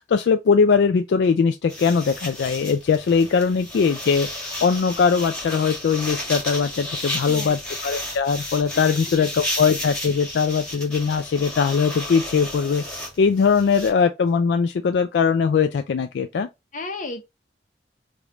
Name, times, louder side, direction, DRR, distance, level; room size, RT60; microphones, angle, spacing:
voice 1, 0.1-16.5, left 5 dB, 70° left, 0.3 m, -21 dB
sound 1, 1.7-13.9, left 1 dB, 5° left, 1.6 m, -33 dB
voice 2, 7.2-7.6 9.5-9.6 16.7-17.2, left 2 dB, 45° left, 0.9 m, -33 dB
5.0 x 2.5 x 3.1 m
head